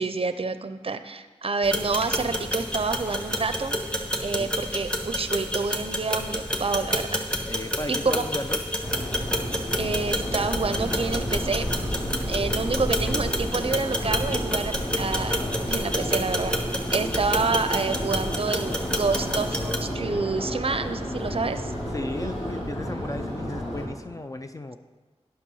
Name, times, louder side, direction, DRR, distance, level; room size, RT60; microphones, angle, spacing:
voice 1, 0.0-3.8 4.2-7.2 7.9-8.3 9.8-11.7 12.3-15.4 15.7-16.5 16.9-21.7, right 4 dB, 55° right, 11 dB, 0.5 m, -28 dB
sound 1, 1.6-19.8, equal, 10° left, 1.1 m, -30 dB
sound 2, 2.0-4.3 4.6-12.5, left 1 dB, 45° left, 1.1 m, -49 dB
voice 2, 7.5-8.6 21.9-24.8, left 2 dB, 30° left, 7 dB, 0.4 m, -35 dB
Subway metro underground, 8.8-23.8, equal, 80° left, 2.9 m, -31 dB
10.0 x 6.2 x 5.5 m, 1.3 s
wide cardioid pair, 70°, 12 cm